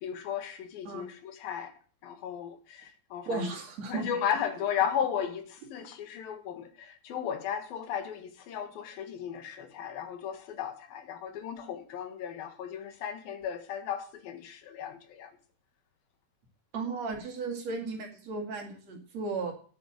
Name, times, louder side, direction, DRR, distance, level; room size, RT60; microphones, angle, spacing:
voice 1, 0.0-1.7 2.0-3.5 3.9-15.3, left 8 dB, 85° left, 3.4 m, -35 dB
voice 2, 3.3-4.2 16.7-19.5, right 4 dB, 50° right, 3.2 m, -35 dB
10.0 x 8.8 x 7.4 m
omnidirectional pair, 4.1 m